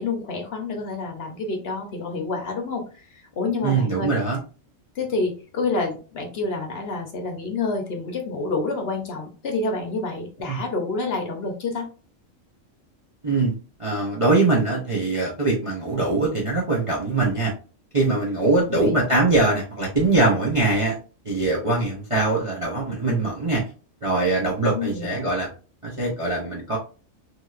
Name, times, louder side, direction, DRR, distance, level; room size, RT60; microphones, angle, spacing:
voice 1, 0.0-2.8 3.1-4.1 5.0-11.9 18.6-18.9 24.7-25.2, left 3 dB, 55° left, 2 dB, 0.9 m, -28 dB
voice 2, 3.6-4.4 10.5-10.6 13.2-13.5 13.8-17.5 17.9-21.0 21.2-23.6 24.0-25.5 25.8-26.8, right 2 dB, 40° right, -4 dB, 0.5 m, -22 dB
3.2 x 2.8 x 2.4 m, 0.37 s
omnidirectional pair, 1.4 m